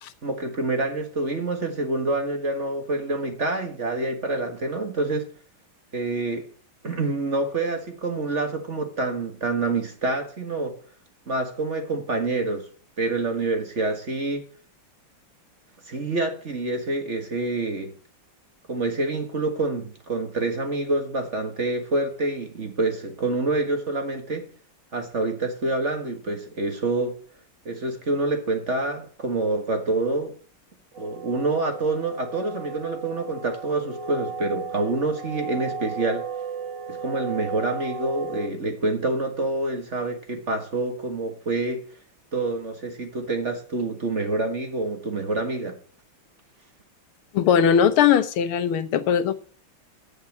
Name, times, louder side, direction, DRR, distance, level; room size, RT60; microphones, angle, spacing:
voice 1, 0.2-5.3 5.9-6.5 6.8-10.7 11.3-12.6 13.0-14.4 15.9-17.9 18.7-24.5 24.9-27.2 27.6-30.3 31.0-36.2 36.9-41.8 42.3-45.8, right 2 dB, 35° right, 1.7 m, -27 dB
sound 1, 30.9-38.5, right 5 dB, 60° right, 3.3 m, -35 dB
voice 2, 47.3-49.3, left 8 dB, 85° left, 1.8 m, -19 dB
9.8 x 7.1 x 7.3 m
omnidirectional pair, 2.3 m